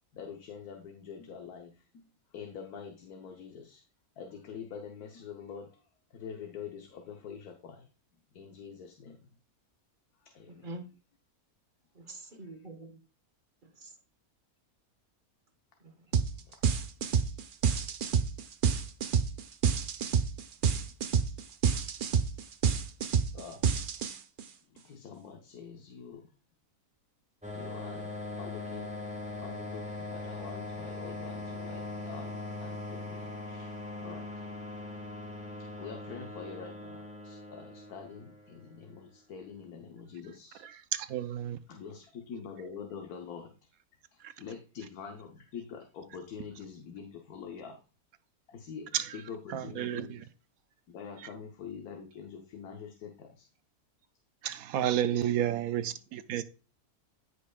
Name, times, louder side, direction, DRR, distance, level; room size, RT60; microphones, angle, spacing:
voice 1, 0.1-2.0 2.3-3.8 4.2-5.8 6.1-7.9 8.3-9.2 10.2-10.7 16.1-16.6 23.3-23.6 23.9-24.0 24.7-26.3 27.5-28.9 29.4-34.3 35.8-40.6 41.7-43.5 44.1-47.8 48.5-48.9 49.1-50.2 50.9-53.5 55.1-55.5 55.9-56.0, left 6 dB, 80° left, 1.4 m, -45 dB
voice 2, 10.5-10.9 11.9-13.0 13.6-14.0 15.8-16.1, right 2 dB, 35° right, 1.2 m, -45 dB
sound 1, 16.1-16.3 16.6-24.4, right 6 dB, 55° right, 0.5 m, -28 dB
sound 2, 27.4-38.8, left 2 dB, 5° right, 1.0 m, -41 dB
voice 3, 40.9-41.6 44.2-44.3 48.9-49.1 49.5-50.2 54.4-56.4, right 11 dB, 75° right, 1.1 m, -31 dB
14.5 x 5.2 x 2.3 m
omnidirectional pair, 1.6 m